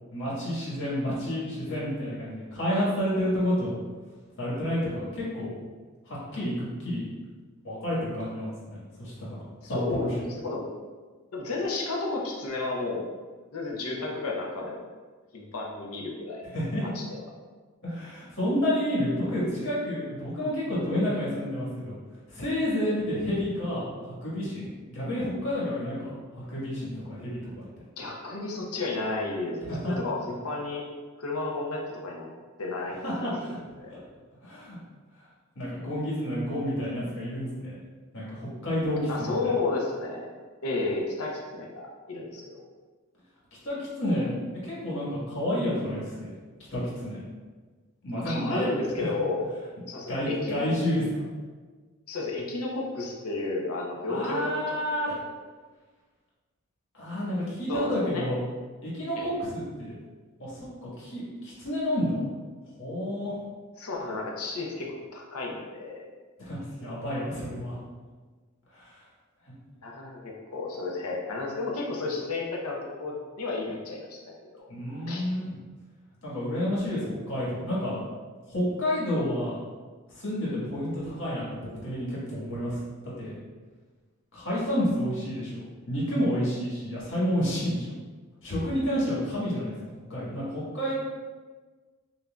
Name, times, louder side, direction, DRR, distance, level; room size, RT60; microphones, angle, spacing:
voice 1, 0.1-3.7 4.4-5.5 6.0-7.0 7.6-9.4 9.7-10.1 16.4-16.8 17.8-22.0 22.3-27.4 29.7-29.9 33.0-33.6 33.9-34.0 34.4-34.8 35.5-37.8 38.1-39.5 43.6-44.3 44.6-46.3 46.7-47.2 48.0-48.7 50.1-51.2 54.1-55.2 56.9-58.4 58.8-59.9 60.4-62.3 62.8-63.3 66.4-67.7 68.7-69.0 74.7-75.5 76.2-78.0 78.5-79.6 80.1-82.8 83.2-83.3 84.3-87.9 88.4-90.9, equal, 55° left, -7 dB, 1.5 m, -30 dB
voice 2, 9.6-10.7 11.3-13.0 13.5-14.8 15.3-16.4 16.9-17.2 22.8-22.9 28.0-29.6 29.9-30.8 31.2-32.3 32.6-34.0 39.1-40.3 40.6-42.6 48.2-49.5 49.9-50.7 52.1-54.8 55.0-55.3 57.7-58.2 59.2-59.3 63.8-66.0 69.8-74.2 74.5-74.7 75.1-75.2, left 3 dB, 85° left, -1 dB, 0.8 m, -32 dB
5.8 x 2.7 x 2.3 m, 1.4 s
head